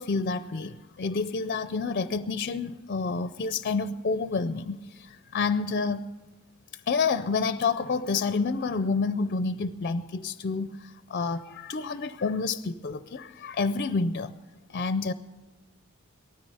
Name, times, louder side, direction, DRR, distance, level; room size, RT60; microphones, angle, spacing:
voice 1, 0.0-6.0 6.9-14.3 14.7-15.1, left 4 dB, 45° left, 12 dB, 0.5 m, -29 dB
19.0 x 13.5 x 5.5 m, 1.2 s
head